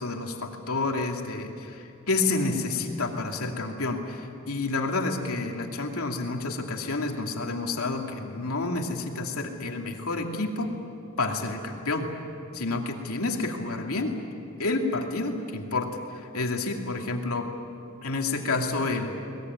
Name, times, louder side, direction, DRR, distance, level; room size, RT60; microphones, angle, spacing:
voice 1, 0.0-10.7 11.2-12.1 12.5-14.1 14.6-17.5 18.0-19.1, left 3 dB, 90° left, 2 dB, 2.6 m, -29 dB
23.0 x 20.0 x 9.6 m, 2.7 s
head